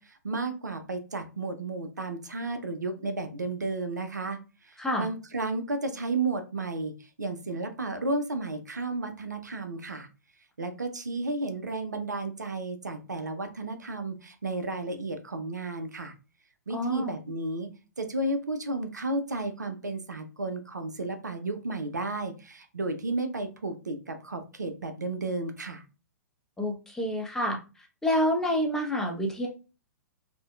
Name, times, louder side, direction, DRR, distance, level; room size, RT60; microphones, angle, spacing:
voice 1, 0.0-4.4 4.6-10.1 10.6-16.1 16.7-25.8, right 2 dB, 80° right, 8 dB, 0.4 m, -33 dB
voice 2, 16.7-17.1 26.6-27.6 28.0-29.5, equal, 5° left, 0 dB, 0.4 m, -28 dB
2.6 x 2.1 x 2.2 m, 0.32 s
figure-of-eight pair, 115°, 9 cm